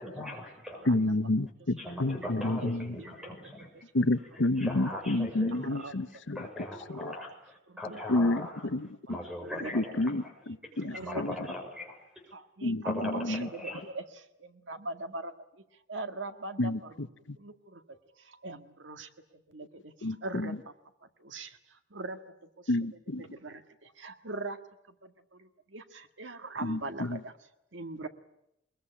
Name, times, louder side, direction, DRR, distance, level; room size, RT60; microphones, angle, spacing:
voice 1, 0.0-0.9 1.8-3.7 4.3-8.6 9.1-10.3 10.6-12.0 12.8-13.8, left 1 dB, 5° right, 5.8 m, -40 dB
voice 2, 0.9-2.9 3.9-6.4 7.0-7.1 8.1-8.4 8.7-8.9 9.7-10.2 10.8-11.3 12.6-13.5 16.6-17.1 20.0-20.6 22.7-23.2 26.6-27.2, left 2 dB, 80° left, 1.0 m, -29 dB
voice 3, 3.0-3.3 5.5-6.1 7.7-8.0 9.4-9.7 10.8-11.2 12.3-14.0 14.4-15.3 15.9-17.0 17.4-17.8 18.3-19.1 19.5-19.9 20.2-20.7 21.2-21.6 21.9-22.3 23.2-24.6 25.0-27.3 27.7-28.1, right 2 dB, 80° right, 1.8 m, -41 dB
22.0 x 21.5 x 10.0 m
head